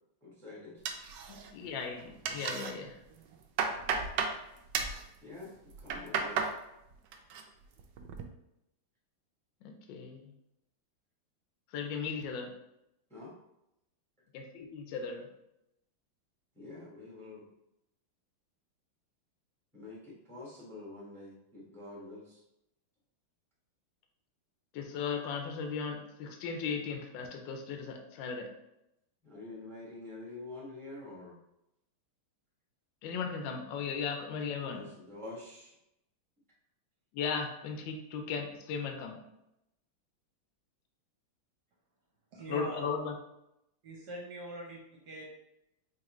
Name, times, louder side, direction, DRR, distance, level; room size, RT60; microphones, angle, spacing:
voice 1, 0.2-0.8 5.2-5.5 5.8-6.4 13.1-13.3 16.5-17.4 19.7-22.4 29.2-31.3 34.7-35.7, left 2 dB, ahead, -5 dB, 0.8 m, -47 dB
sound 1, 0.9-1.7 2.0-2.7 3.2-4.4 4.7-5.0 5.7-6.6 6.9-7.4 7.8-8.2, right 5 dB, 75° right, 1.0 m, -34 dB
voice 2, 1.3-2.9 9.6-10.3 11.7-12.5 14.3-15.3 24.7-28.5 33.0-34.9 37.1-39.2 42.5-43.1, left 5 dB, 70° left, 4 dB, 1.2 m, -37 dB
voice 3, 42.3-42.9 43.8-45.3, right 2 dB, 60° right, -2 dB, 1.2 m, -43 dB
4.8 x 3.0 x 3.0 m, 0.85 s
omnidirectional pair, 2.3 m